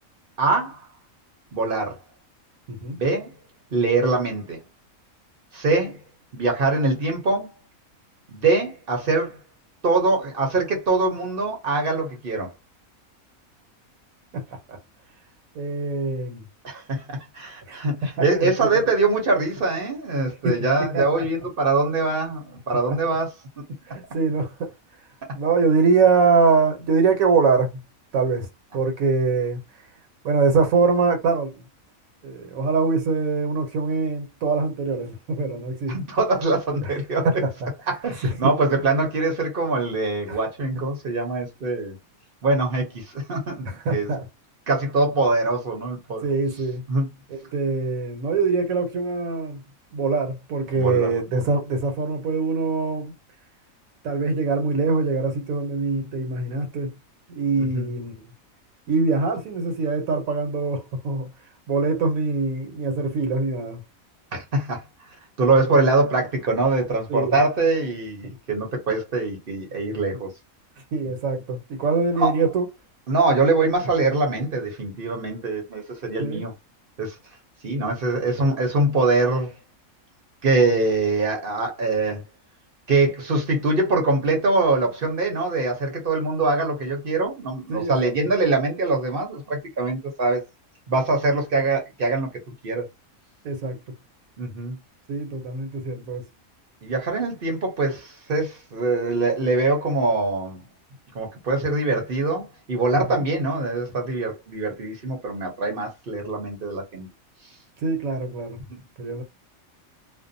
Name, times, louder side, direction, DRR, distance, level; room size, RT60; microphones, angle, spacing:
voice 1, 0.4-0.9 1.5-2.0 3.0-3.3 3.7-4.6 5.5-6.0 6.3-7.5 8.3-9.4 9.8-12.5 16.6-23.4 35.9-37.3 37.9-42.0 42.4-44.1 44.7-46.3 46.9-47.1 50.8-51.5 57.6-57.9 64.3-64.8 65.4-70.3 72.2-72.4 73.1-76.5 77.0-77.1 77.6-79.5 80.4-82.2 82.9-90.4 90.9-92.3 92.6-92.8 94.4-94.8 96.8-100.6 101.1-107.1 108.7-108.8, right 3 dB, 50° right, 0.8 m, -23 dB
voice 2, 2.7-3.0 14.3-14.8 15.5-16.4 17.7-18.7 20.4-21.3 22.9-23.0 23.9-24.7 25.3-27.7 28.1-28.5 28.7-29.6 30.2-31.6 32.2-36.0 36.8-36.9 37.2-37.7 38.2-38.5 40.3-40.4 43.6-44.3 46.2-46.8 47.3-49.6 49.9-53.1 54.0-56.9 57.3-58.2 58.9-61.3 61.7-63.8 67.1-67.4 68.2-68.4 70.9-72.7 76.2-76.4 87.7-88.1 93.4-93.8 95.1-96.2 102.9-103.3 107.8-108.6 109.0-109.2, right 4 dB, 75° right, 1.2 m, -23 dB
2.6 x 2.1 x 2.5 m
omnidirectional pair, 1.5 m